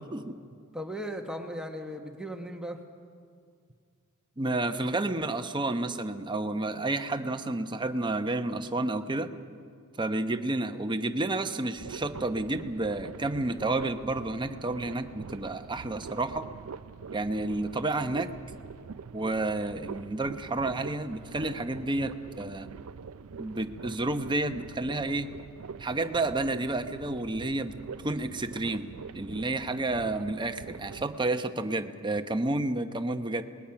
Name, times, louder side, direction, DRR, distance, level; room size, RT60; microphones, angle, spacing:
voice 1, 0.7-2.8, equal, 5° right, 3 dB, 1.3 m, -37 dB
voice 2, 4.4-9.3 10.0-16.5 17.1-18.3 19.1-22.7 23.4-25.3 25.8-27.7 28.0-28.9 29.1-33.4, right 2 dB, 20° right, 7 dB, 0.9 m, -30 dB
sound 1, 11.8-31.2, right 5 dB, 75° right, 0.5 m, -44 dB
27.5 x 20.5 x 5.9 m, 2.2 s
head